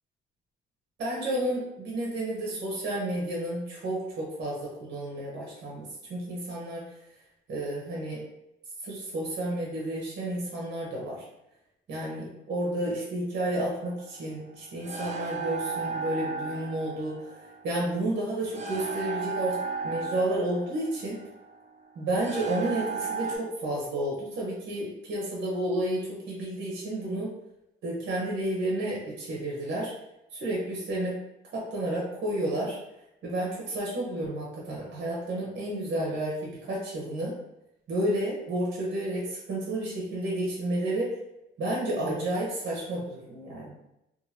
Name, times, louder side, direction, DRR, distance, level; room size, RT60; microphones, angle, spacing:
voice 1, 1.0-6.9 7.5-8.2 8.8-11.2 11.9-19.6 19.8-21.2 22.0-27.3 27.8-29.9 30.3-31.2 31.5-32.8 33.2-37.3 37.9-41.1 41.6-43.8, right 1 dB, 60° right, -3 dB, 0.9 m, -31 dB
sound 1, 13.8-23.4, right 5 dB, 35° right, 0.5 m, -35 dB
2.8 x 2.3 x 2.8 m, 0.86 s
cardioid pair, 90°, 20 cm